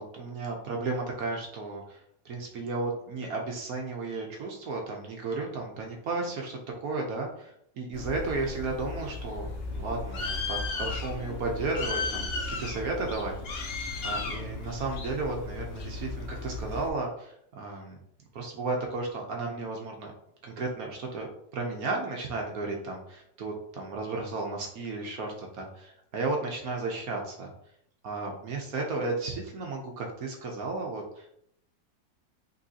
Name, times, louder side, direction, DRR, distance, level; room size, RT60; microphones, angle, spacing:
voice 1, 0.0-13.7 14.0-18.0 18.3-20.1 20.4-27.5 28.0-31.4, right 3 dB, 60° right, 1 dB, 1.1 m, -34 dB
Bird, 7.9-16.9, left 3 dB, 80° left, 0.5 m, -35 dB
5.5 x 3.1 x 2.7 m, 0.72 s
omnidirectional pair, 2.0 m